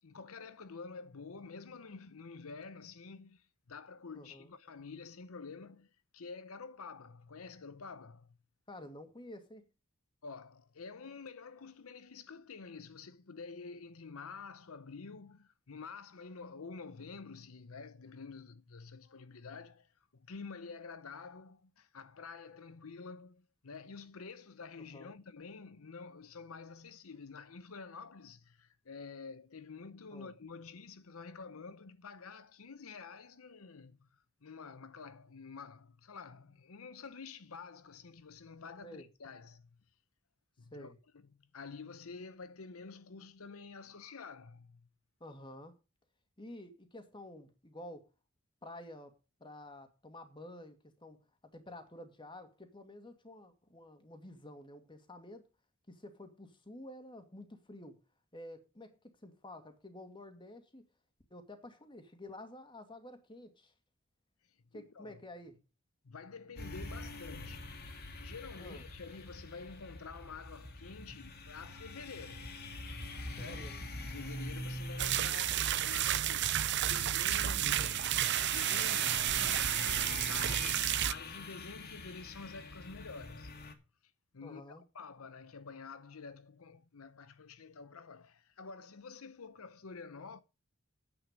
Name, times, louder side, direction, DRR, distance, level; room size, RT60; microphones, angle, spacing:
voice 1, 0.0-8.4 10.2-39.8 40.6-41.2 41.5-44.9 64.4-65.2 66.0-72.6 73.3-73.7 74.1-83.7 84.0-90.4, left 4 dB, 80° left, 0.8 m, -49 dB
voice 2, 4.1-4.5 8.7-9.7 24.8-25.1 30.1-30.3 38.8-39.1 40.7-41.0 45.2-45.7 46.4-48.1 48.6-55.5 55.9-58.0 58.3-60.9 61.3-63.7 64.7-65.6 68.6-68.8 73.4-73.8 78.8-79.3 84.4-84.8, left 1 dB, 25° left, 2.3 m, -50 dB
sound 1, 66.6-83.7, left 2 dB, 50° left, 2.3 m, -45 dB
sound 2, 75.0-81.1, right 12 dB, 55° right, 0.6 m, -31 dB
9.8 x 8.8 x 5.2 m
head